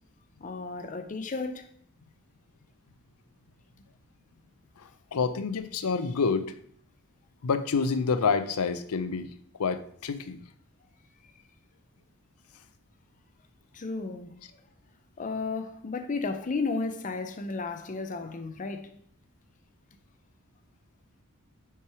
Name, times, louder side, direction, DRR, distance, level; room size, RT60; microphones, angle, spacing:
voice 1, 0.4-1.7 11.2-11.4 13.7-14.3 15.2-18.9, left 3 dB, 35° left, 0.5 m, -33 dB
voice 2, 4.8-6.5 7.4-9.3 9.6-10.4, left 5 dB, 85° left, 0.5 m, -28 dB
5.8 x 4.7 x 4.7 m
head